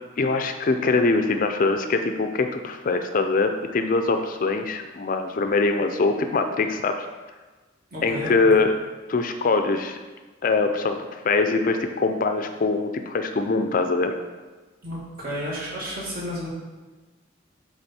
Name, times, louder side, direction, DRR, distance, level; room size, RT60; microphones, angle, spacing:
voice 1, 0.2-7.1 8.0-8.7 9.1-10.0 10.4-14.1, left 3 dB, 45° left, 6 dB, 0.4 m, -23 dB
voice 2, 7.9-8.5 14.8-16.5, equal, 50° right, -5 dB, 2.0 m, -32 dB
7.9 x 3.5 x 4.2 m, 1.3 s
head